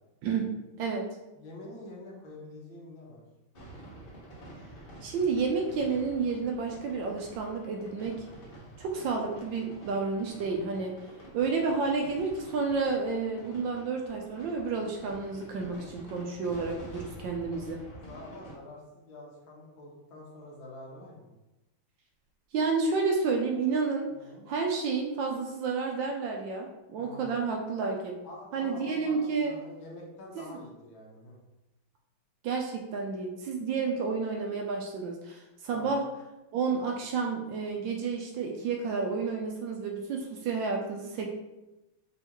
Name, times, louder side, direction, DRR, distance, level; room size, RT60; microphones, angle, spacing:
voice 1, 0.2-1.1 5.0-8.3 8.8-11.0 11.3-17.8 22.5-24.1 24.5-28.2 28.5-29.5 30.5-30.6 32.4-36.0 36.5-41.4, right 4 dB, 75° right, 1 dB, 1.2 m, -30 dB
voice 2, 1.4-3.2 17.5-21.3 24.1-24.4 27.0-27.3 28.2-31.4 35.7-36.0, left 1 dB, 70° left, -3 dB, 1.7 m, -46 dB
sound 1, 3.5-18.5, right 1 dB, 35° left, 0.9 m, -48 dB
5.6 x 3.0 x 2.9 m, 0.99 s
omnidirectional pair, 2.3 m